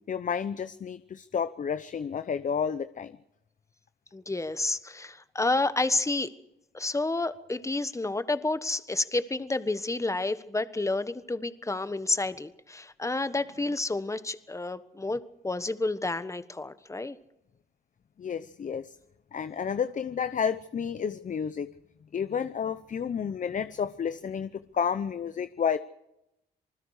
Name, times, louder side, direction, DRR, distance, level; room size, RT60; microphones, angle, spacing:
voice 1, 0.1-3.2 18.2-18.9 19.3-21.7 22.1-25.8, left 7 dB, 40° left, 13 dB, 0.8 m, -31 dB
voice 2, 4.1-6.3 6.7-17.2, left 2 dB, 15° left, 13 dB, 1.3 m, -30 dB
27.5 x 20.5 x 4.9 m, 0.87 s
cardioid pair, 90°, 20 cm